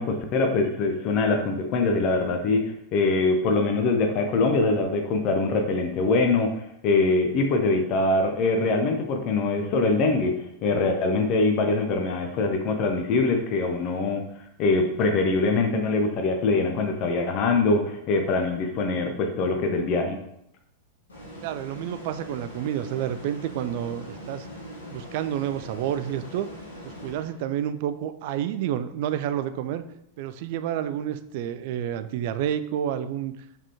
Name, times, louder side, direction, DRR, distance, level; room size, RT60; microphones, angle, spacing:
voice 1, 0.0-10.3 10.6-14.2 14.6-20.2, left 3 dB, 40° left, 4 dB, 0.5 m, -23 dB
sound 1, 21.1-27.7, equal, 70° left, 1.6 m, -41 dB
voice 2, 21.4-24.5 24.9-26.5 26.8-29.8 30.2-33.3, right 10 dB, 50° right, 11 dB, 0.3 m, -29 dB
4.8 x 3.5 x 2.8 m, 0.77 s
figure-of-eight pair, 90°, 0 cm